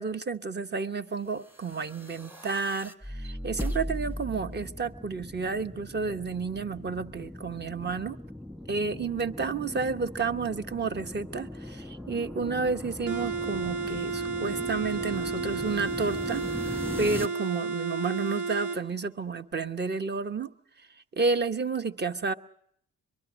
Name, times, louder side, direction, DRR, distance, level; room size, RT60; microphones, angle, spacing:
voice 1, 0.0-8.2 8.7-16.5 17.0-20.5 21.1-22.3, right 4 dB, 30° right, 11 dB, 1.0 m, -31 dB
sound 1, 1.5-17.3, left 1 dB, 5° right, 1.6 m, -39 dB
sound 2, 13.1-18.8, right 4 dB, 65° right, 2.1 m, -32 dB
23.0 x 23.0 x 6.2 m, 0.69 s
cardioid pair, 75°, 34 cm